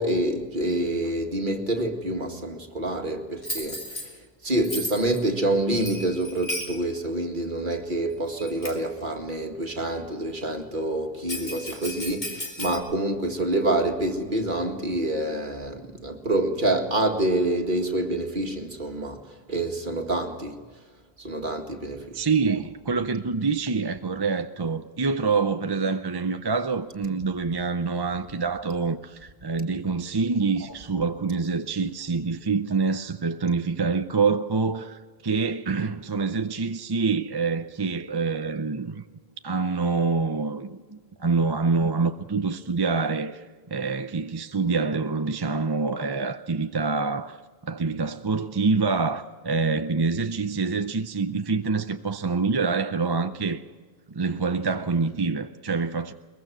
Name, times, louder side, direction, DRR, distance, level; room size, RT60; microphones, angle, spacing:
voice 1, 0.0-20.6 21.2-22.6, right 1 dB, 50° right, 2.2 m, -27 dB
Bell, 3.4-4.1 4.6-5.2 5.7-6.8 7.7-7.8 8.4-8.9 11.3-12.8, equal, 45° left, 3.2 m, -34 dB
voice 2, 22.1-39.0 39.4-53.6 54.1-56.1, right 4 dB, 30° right, 0.6 m, -26 dB
22.5 x 21.5 x 6.2 m
omnidirectional pair, 1.1 m